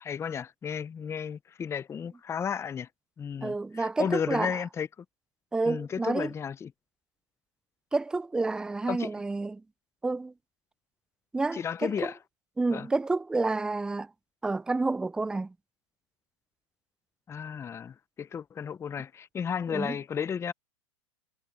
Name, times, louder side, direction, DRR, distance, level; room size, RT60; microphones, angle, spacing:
voice 1, 0.0-2.9 3.2-4.9 5.6-6.7 8.9-9.1 11.5-12.2 12.7-12.9 17.3-20.5, left 7 dB, 15° left, 0.8 m, -33 dB
voice 2, 3.4-4.6 5.5-6.3 7.9-9.6 10.0-10.3 11.3-12.1 12.6-14.1 14.4-15.5 19.7-20.0, right 3 dB, 5° right, 0.4 m, -29 dB
hypercardioid pair, 120°, 16 cm